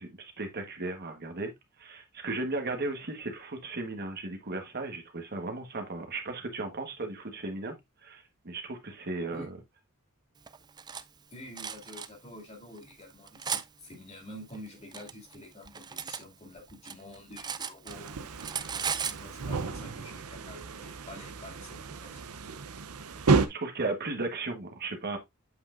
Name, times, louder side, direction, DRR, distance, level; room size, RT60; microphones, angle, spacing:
voice 1, 0.0-1.5 1.8-7.7 8.0-9.6 23.3-25.2, right 2 dB, 45° right, 1.4 m, -36 dB
Cutlery silverware, 10.5-11.0 11.6-12.1 12.8-13.7 14.5-16.2 16.6-18.1 18.4-19.2, right 7 dB, 20° right, 0.4 m, -36 dB
voice 2, 11.3-18.2 19.0-22.2, left 1 dB, 30° left, 2.5 m, -48 dB
sound 1, 17.9-23.5, right 4 dB, 85° right, 0.7 m, -31 dB
8.0 x 5.7 x 2.5 m
head